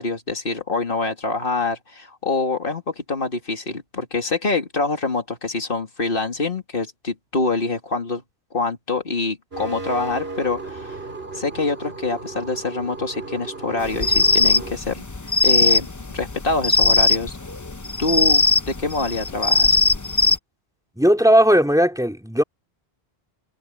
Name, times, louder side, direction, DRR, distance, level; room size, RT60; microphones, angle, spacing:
voice 1, 0.0-8.2 8.5-11.0 11.3-15.0 15.4-15.9 16.1-17.4 18.0-19.8, left 3 dB, 60° left, 2.8 m, -25 dB
sound 1, 9.5-14.7, right 3 dB, 70° right, 4.1 m, -35 dB
sound 2, 13.8-20.4, left 3 dB, 20° left, 0.7 m, -19 dB
voice 2, 21.0-22.4, equal, 5° right, 3.9 m, -16 dB
omnidirectional pair, 1.1 m